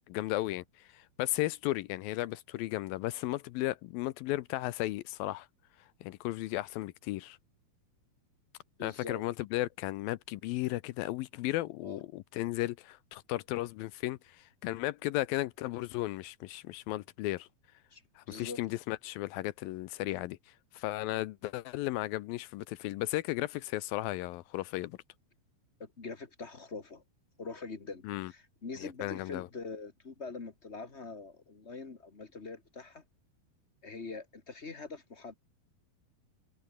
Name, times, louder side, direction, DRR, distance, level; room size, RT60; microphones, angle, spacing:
voice 1, 0.0-5.5 6.0-7.4 8.8-17.5 18.2-20.4 20.7-25.0 28.0-28.3 28.8-29.5, left 17 dB, 80° left, 2.3 m, -35 dB
voice 2, 8.8-9.2 11.8-12.0 17.9-18.6 25.8-27.0 27.4-33.0 33.8-35.3, left 4 dB, 40° left, 0.9 m, -44 dB
omnidirectional pair, 4.5 m